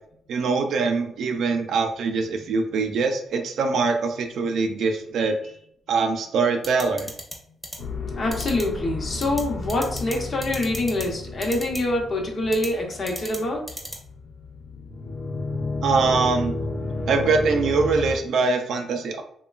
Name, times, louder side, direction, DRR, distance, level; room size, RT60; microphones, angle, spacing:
voice 1, 0.3-5.4 5.9-7.1 15.8-16.5 17.1-19.2, right 4 dB, 75° right, 5 dB, 0.4 m, -23 dB
sound 1, 6.6-7.3 7.6-7.8 8.3-8.6 9.2-9.4 9.7-10.1 10.4-11.0 11.4-11.8 12.5-12.7 13.1-13.4 13.7-14.0, equal, ahead, 0.7 m, -34 dB
sound 2, 7.8-18.1, left 2 dB, 70° left, 0.5 m, -32 dB
voice 2, 8.2-13.7, left 1 dB, 45° left, 0 dB, 0.8 m, -25 dB
2.9 x 2.2 x 2.3 m, 0.65 s
cardioid pair, 100°, 0 cm